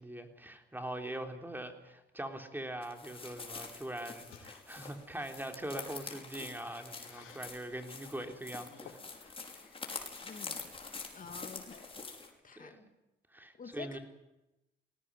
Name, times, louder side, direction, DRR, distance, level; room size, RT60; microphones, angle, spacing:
voice 1, 0.0-9.3 12.6-12.9 13.3-14.0, right 1 dB, 10° right, 5 dB, 3.5 m, -42 dB
sound 1, 2.8-12.3, left 4 dB, 30° left, 5.5 m, -46 dB
sound 2, 4.2-7.9 8.4-10.1 10.4-11.5, left 8 dB, 85° left, 4.5 m, -58 dB
voice 2, 10.2-10.7 11.1-11.8 12.4-12.7 13.6-14.0, left 5 dB, 45° left, 7 dB, 2.3 m, -47 dB
20.5 x 18.5 x 9.9 m, 0.94 s
cardioid pair, 90°, 20 cm